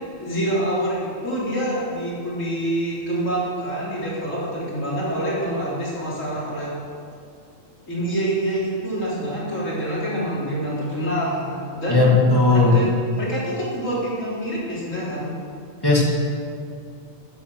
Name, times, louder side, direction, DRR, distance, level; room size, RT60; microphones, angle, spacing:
voice 1, 0.2-6.7 7.9-12.0 12.5-15.3, right 1 dB, 80° left, -7 dB, 4.0 m, -26 dB
voice 2, 11.9-12.7 15.8-16.1, left 3 dB, 15° left, -3 dB, 2.2 m, -16 dB
13.5 x 9.0 x 6.3 m, 2.3 s
omnidirectional pair, 1.3 m